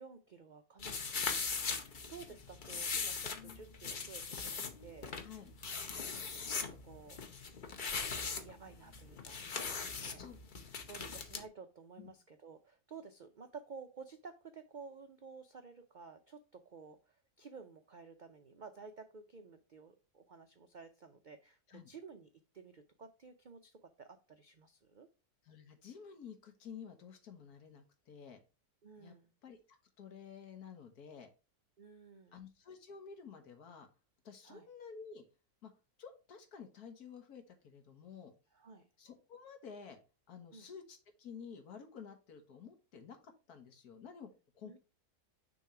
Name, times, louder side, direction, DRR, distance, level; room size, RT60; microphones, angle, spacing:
voice 1, 0.0-5.1 6.0-7.2 8.1-9.6 10.0-10.2 10.9-22.3 22.5-25.1 28.8-29.3 31.8-32.3 34.4-34.7 38.5-38.9 40.5-40.7 44.6-44.8, right 5 dB, 85° right, 7 dB, 0.4 m, -53 dB
sound 1, 0.8-11.4, left 5 dB, 40° left, 0.8 m, -40 dB
voice 2, 5.2-5.5 10.1-10.4 11.0-11.1 12.0-12.1 21.7-21.9 25.4-28.4 29.0-29.1 29.4-29.6 30.0-31.3 32.3-33.9 34.3-35.2 35.6-35.7 36.0-38.3 39.0-40.0 40.3-44.8, left 6 dB, 80° left, 6 dB, 1.7 m, -51 dB
6.3 x 3.1 x 5.7 m, 0.32 s
omnidirectional pair, 1.6 m